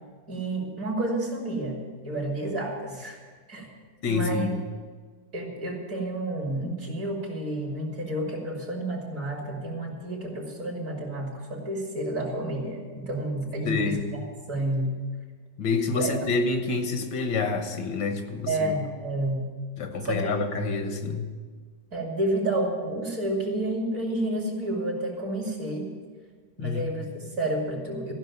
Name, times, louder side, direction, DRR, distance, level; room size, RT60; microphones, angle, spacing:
voice 1, 0.3-3.2 3.5-3.7 4.1-4.5 5.3-14.2 14.5-15.0 15.9-16.2 18.5-19.5 20.0-20.4 21.9-25.9 26.6-28.1, right 1 dB, 45° right, 0 dB, 3.1 m, -30 dB
voice 2, 4.0-4.6 13.7-14.1 15.6-18.7 19.8-21.3 26.6-26.9, left 4 dB, 80° left, 6 dB, 1.9 m, -27 dB
14.5 x 6.3 x 9.2 m, 1.5 s
omnidirectional pair, 2.0 m